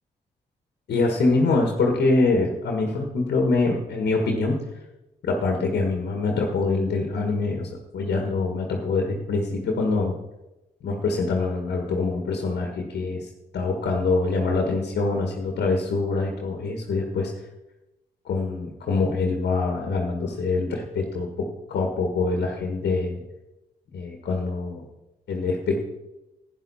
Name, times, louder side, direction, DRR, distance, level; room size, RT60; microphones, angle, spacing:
voice 1, 0.9-4.6 5.2-10.1 10.8-13.3 13.5-17.3 18.2-23.2 23.9-24.8 25.3-25.8, left 3 dB, 75° left, 2 dB, 1.6 m, -24 dB
11.5 x 9.7 x 4.3 m, 0.98 s
supercardioid pair, 45°, 17 cm